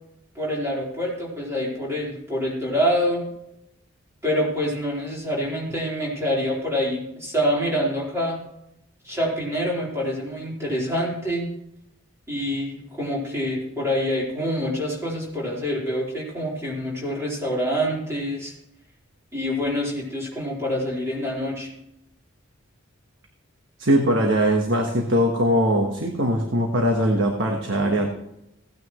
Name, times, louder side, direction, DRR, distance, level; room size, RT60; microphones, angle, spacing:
voice 1, 0.4-3.2 4.2-8.4 9.0-11.5 12.3-18.5 19.3-21.7, equal, 15° right, -5 dB, 4.0 m, -26 dB
voice 2, 23.8-28.1, equal, 60° right, 2 dB, 1.4 m, -21 dB
17.0 x 9.4 x 3.2 m, 0.82 s
head